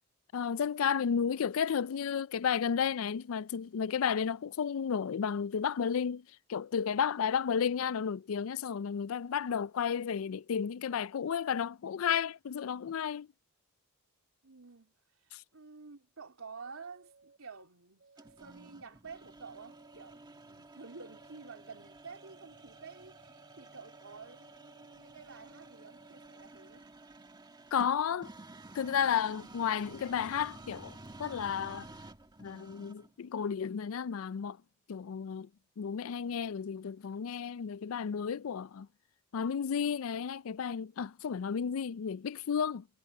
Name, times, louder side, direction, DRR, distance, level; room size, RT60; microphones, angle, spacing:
voice 1, 0.3-6.2 6.5-13.3 15.3-15.4 27.7-28.3 28.7-31.9 32.4-34.6 34.9-35.5 35.8-38.9 39.3-42.9, left 7 dB, 75° left, 0.4 m, -32 dB
voice 2, 14.4-14.9 15.2-26.8, right 5 dB, 85° right, 3.1 m, -50 dB
sound 1, 16.6-17.4 18.0-18.7 19.5-20.2 20.8-21.5 22.2-26.5, right 3 dB, 55° right, 7.2 m, -63 dB
sound 2, 18.2-33.2, right 2 dB, 20° right, 1.6 m, -52 dB
head